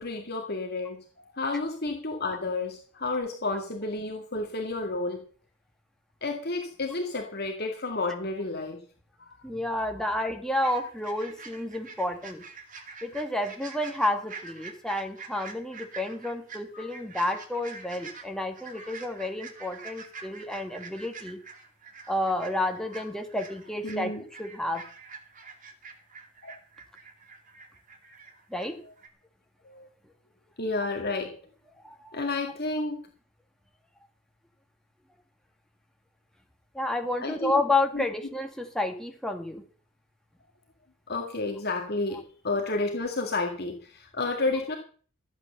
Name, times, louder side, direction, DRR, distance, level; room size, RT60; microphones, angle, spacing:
voice 1, 0.0-5.2 6.2-8.8 9.2-9.4 16.7-16.9 18.8-18.9 20.2-20.3 23.8-24.2 26.4-26.5 29.6-29.9 30.6-31.3 32.1-33.0 37.2-37.5 37.9-38.1 41.1-44.8, left 3 dB, 50° left, 2 dB, 2.1 m, -31 dB
voice 2, 9.4-12.4 13.0-21.4 22.1-24.1 24.4-24.8 28.5-28.8 31.8-32.2 36.7-39.6, left 1 dB, 5° left, 3 dB, 2.1 m, -30 dB
sound 1, 10.6-28.7 29.0-29.1, right 5 dB, 40° right, 2.5 m, -46 dB
14.5 x 9.0 x 6.8 m, 0.43 s
head